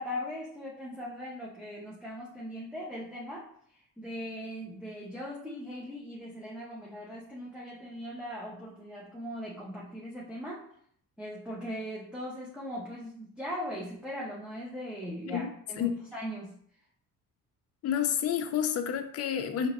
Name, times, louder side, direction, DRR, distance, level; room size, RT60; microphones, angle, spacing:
voice 1, 0.0-10.7 11.2-16.5, equal, ahead, -6 dB, 0.5 m, -39 dB
voice 2, 15.3-15.9 17.8-19.7, left 9 dB, 40° left, 6 dB, 0.5 m, -30 dB
5.0 x 2.9 x 2.9 m, 0.64 s
cardioid pair, 135°, 37 cm